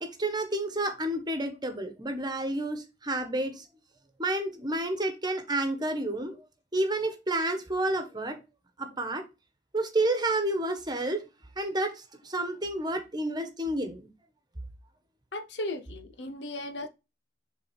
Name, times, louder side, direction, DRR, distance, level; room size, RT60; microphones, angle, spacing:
voice 1, 0.0-3.6 4.2-6.5 6.7-8.4 8.8-9.2 9.7-11.2 11.6-14.0, right 1 dB, 25° right, 1.3 m, -30 dB
voice 2, 15.3-16.9, left 1 dB, 80° left, 0.9 m, -36 dB
7.0 x 3.8 x 4.5 m
head